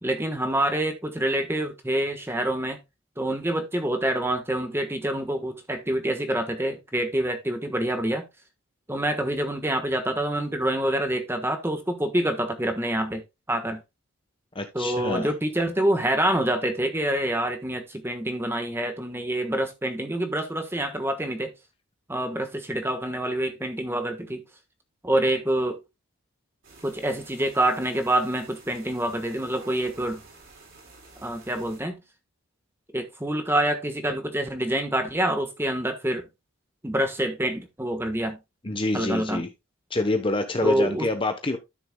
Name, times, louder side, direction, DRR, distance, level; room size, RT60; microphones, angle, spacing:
voice 1, 0.0-2.8 3.2-8.2 8.9-13.2 13.5-13.8 14.7-21.5 22.1-24.4 25.0-25.8 26.8-30.2 31.2-32.0 32.9-36.3 36.8-38.4 38.9-39.4 40.6-41.1, right 1 dB, 10° right, 1.3 m, -26 dB
voice 2, 14.5-15.3 38.6-39.5 39.9-41.6, left 2 dB, 25° left, 0.9 m, -26 dB
sound 1, 26.6-31.8, right 3 dB, 55° right, 4.4 m, -50 dB
12.5 x 6.8 x 2.3 m
head